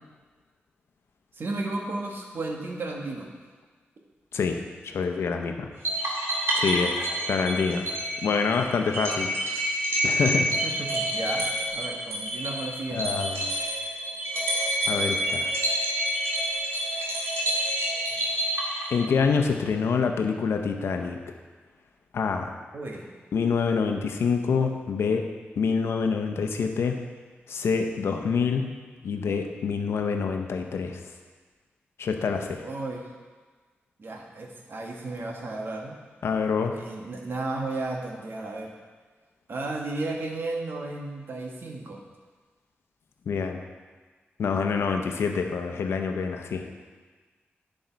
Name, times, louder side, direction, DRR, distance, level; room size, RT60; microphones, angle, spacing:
voice 1, 1.3-3.3 7.0-7.3 10.6-11.5 11.7-13.0 22.7-23.1 32.6-33.1 34.0-36.0 36.7-38.7 39.5-42.1, right 2 dB, 60° right, 0 dB, 1.5 m, -34 dB
voice 2, 4.3-5.7 6.5-7.0 7.3-7.9 8.2-9.6 10.0-10.6 12.9-13.5 14.9-15.5 18.9-21.2 22.1-22.5 23.3-25.2 25.6-27.0 27.5-28.7 29.0-31.0 32.0-32.6 36.2-36.8 43.3-43.6 44.4-46.6, left 5 dB, 85° left, 4 dB, 0.8 m, -26 dB
sound 1, 5.8-19.3, right 1 dB, 85° right, 2.3 m, -28 dB
10.5 x 5.4 x 4.6 m, 1.4 s
cardioid pair, 80°, 4 cm